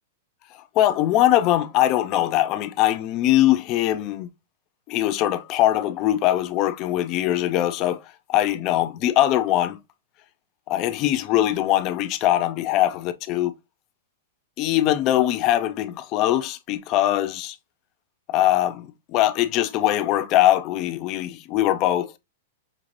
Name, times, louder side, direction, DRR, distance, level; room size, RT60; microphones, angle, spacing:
voice 1, 0.8-4.3 4.9-8.0 8.3-9.8 10.7-13.5 14.6-17.6 18.3-22.1, left 13 dB, 30° left, 0.4 m, -21 dB
5.1 x 3.1 x 2.5 m
supercardioid pair, 165°, 0 cm